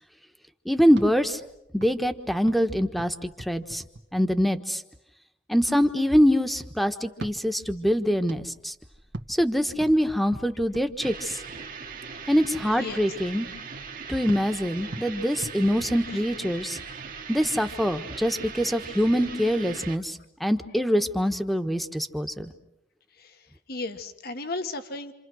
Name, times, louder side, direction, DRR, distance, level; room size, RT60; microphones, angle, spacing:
voice 1, 0.6-1.4 1.7-3.8 4.1-4.8 5.5-8.7 9.3-11.4 12.3-13.5 14.1-16.8 17.3-22.5, equal, ahead, 7 dB, 1.3 m, -24 dB
sound 1, 0.9-4.7 7.1-11.9 14.3-16.7, right 2 dB, 90° right, 1.8 m, -44 dB
sound 2, 11.0-20.0, right 5 dB, 50° right, 1.5 m, -40 dB
voice 2, 23.1-25.1, left 3 dB, 60° left, 8 dB, 1.7 m, -35 dB
28.0 x 27.5 x 6.3 m, 0.83 s
head